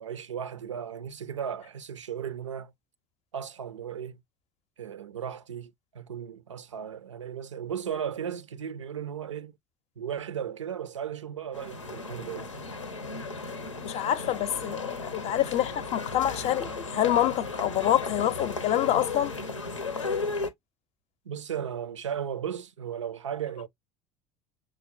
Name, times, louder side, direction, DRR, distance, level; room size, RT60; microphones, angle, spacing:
voice 1, 0.0-2.7 3.3-4.2 4.8-9.5 10.0-12.5 21.3-23.7, right 8 dB, 80° right, 0.4 m, -36 dB
sound 1, 11.5-20.5, left 3 dB, 85° left, 0.6 m, -35 dB
voice 2, 13.8-19.3, left 12 dB, 45° left, 0.5 m, -26 dB
5.9 x 2.0 x 2.5 m
figure-of-eight pair, 65°, 15 cm